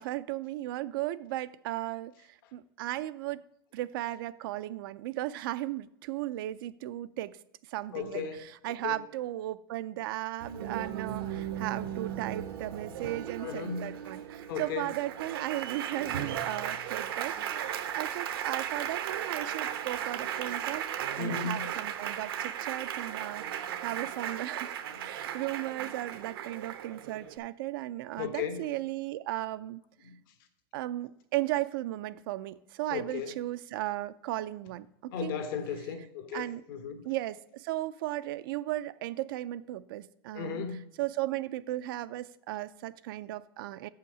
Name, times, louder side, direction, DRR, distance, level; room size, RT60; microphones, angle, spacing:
voice 1, 0.0-3.4 3.7-7.4 7.7-17.6 17.9-24.7 25.0-29.8 30.7-35.3 36.3-36.6 37.0-40.6 41.0-43.9, right 15 dB, 70° right, 0.4 m, -36 dB
voice 2, 7.9-8.4 8.8-9.0 13.4-13.9 14.5-14.9 21.2-21.7 28.2-28.6 32.9-33.3 35.1-37.0 40.3-40.8, left 6 dB, 70° left, 1.4 m, -35 dB
Applause, 10.4-27.4, right 9 dB, 85° right, 0.9 m, -36 dB
7.0 x 5.7 x 6.7 m
supercardioid pair, 145°, 12 cm